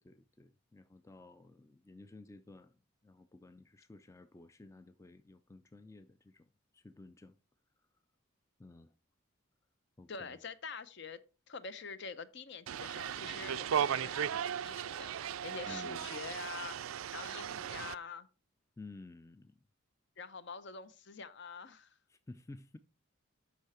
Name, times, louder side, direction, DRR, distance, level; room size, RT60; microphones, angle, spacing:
voice 1, 0.0-2.8 3.0-6.5 6.7-7.4 8.6-8.9 10.0-10.4 15.6-16.1 18.8-19.6 22.1-22.8, left 2 dB, 15° left, 0.3 m, -53 dB
voice 2, 10.1-11.2 11.5-16.8 17.1-18.3 20.2-21.9, left 5 dB, 55° left, 0.7 m, -46 dB
sound 1, 12.7-17.9, right 8 dB, 80° right, 0.4 m, -36 dB
8.2 x 5.8 x 4.3 m
head